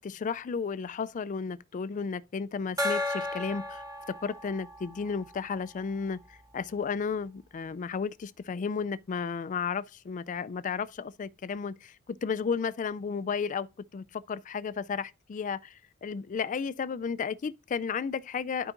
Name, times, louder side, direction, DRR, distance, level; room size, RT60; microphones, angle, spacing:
voice 1, 0.0-13.7 13.9-18.7, left 5 dB, 35° left, 0.3 m, -33 dB
Gong, 2.8-6.0, left 2 dB, 15° right, 0.9 m, -34 dB
11.5 x 4.7 x 2.5 m
head